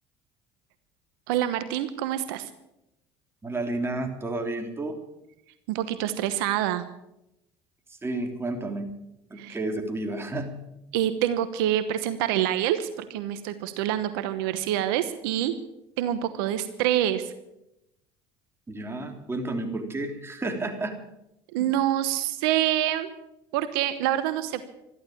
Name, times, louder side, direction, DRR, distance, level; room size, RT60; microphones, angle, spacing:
voice 1, 1.3-2.5 5.7-6.8 9.4-9.6 10.9-15.5 16.0-17.3 21.5-23.1 23.5-24.6, right 12 dB, 85° right, 11 dB, 1.1 m, -26 dB
voice 2, 3.4-5.0 7.9-8.9 9.3-10.6 18.7-21.0, right 2 dB, 20° right, 4 dB, 3.3 m, -31 dB
14.0 x 12.0 x 8.7 m, 0.86 s
supercardioid pair, 75°, 12 cm